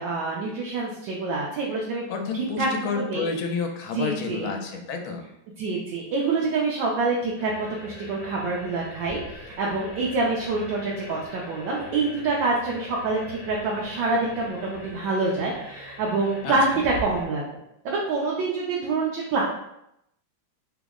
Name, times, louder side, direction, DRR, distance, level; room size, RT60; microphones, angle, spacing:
voice 1, 0.0-2.0 2.3-2.7 3.0-3.3 3.9-4.5 5.6-9.2 9.6-17.4 17.8-19.4, right 3 dB, 75° right, -3 dB, 1.2 m, -26 dB
voice 2, 2.1-5.3 16.4-16.8, left 5 dB, 85° left, 3 dB, 1.4 m, -30 dB
sound 1, 7.4-17.3, equal, 65° left, 1.0 m, -42 dB
3.5 x 2.0 x 3.5 m, 0.81 s
omnidirectional pair, 2.2 m